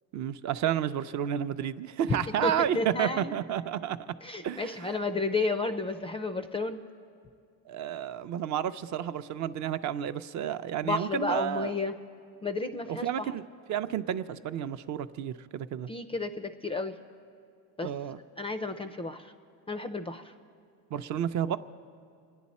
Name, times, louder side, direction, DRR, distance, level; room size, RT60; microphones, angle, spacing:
voice 1, 0.1-4.1 4.4-4.9 7.7-11.7 12.9-13.4 13.7-15.9 17.8-18.2 20.9-21.6, right 10 dB, 45° right, 12 dB, 0.5 m, -31 dB
voice 2, 2.1-3.3 4.2-6.8 10.8-12.0 12.4-13.3 15.9-17.0 17.8-17.9 18.4-19.3 19.7-20.3, left 3 dB, 15° left, 9 dB, 0.3 m, -32 dB
27.0 x 10.0 x 4.2 m, 2.3 s
cardioid pair, 145°, 40 cm